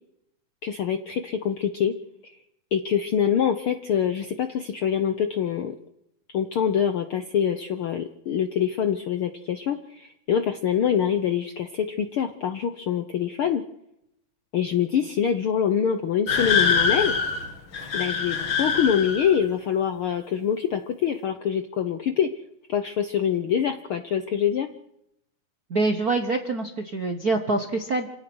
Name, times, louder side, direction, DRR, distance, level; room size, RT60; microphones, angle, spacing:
voice 1, 0.6-1.9 2.2-2.3 2.7-5.7 6.3-13.6 14.5-17.2 17.9-22.3 22.7-24.7, left 8 dB, 80° left, 8 dB, 1.2 m, -25 dB
sound 1, 16.3-19.4, left 5 dB, 40° left, 2.4 m, -24 dB
voice 2, 25.7-28.2, right 3 dB, 65° right, 5 dB, 0.9 m, -25 dB
27.5 x 17.5 x 6.2 m, 0.81 s
omnidirectional pair, 3.7 m